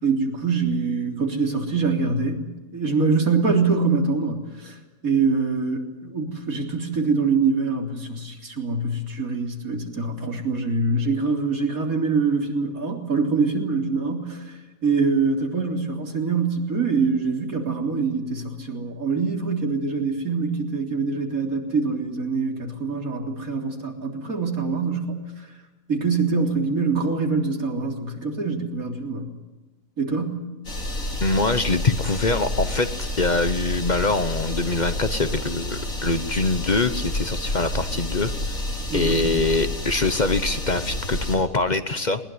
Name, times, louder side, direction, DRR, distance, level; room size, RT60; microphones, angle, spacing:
voice 1, 0.0-2.4 2.7-4.8 5.0-25.5 25.9-29.3 30.0-30.4 38.9-39.2, right 4 dB, 90° right, 2 dB, 4.0 m, -24 dB
sound 1, 30.6-41.4, left 1 dB, 75° left, 4.8 m, -29 dB
voice 2, 31.2-38.3 38.9-42.2, left 3 dB, 35° left, 11 dB, 1.0 m, -23 dB
20.5 x 20.0 x 9.6 m, 1.2 s
omnidirectional pair, 1.4 m